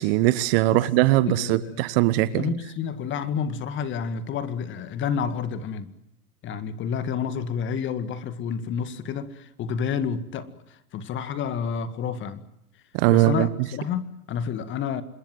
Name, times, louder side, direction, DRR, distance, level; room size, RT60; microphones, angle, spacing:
voice 1, 0.0-2.5 12.9-13.5, right 18 dB, 40° right, 1.1 m, -20 dB
voice 2, 0.7-1.8 2.2-5.9 6.4-12.5 13.1-15.0, left 7 dB, 25° left, 1.9 m, -30 dB
26.5 x 21.5 x 7.7 m
hypercardioid pair, 120°, 45 cm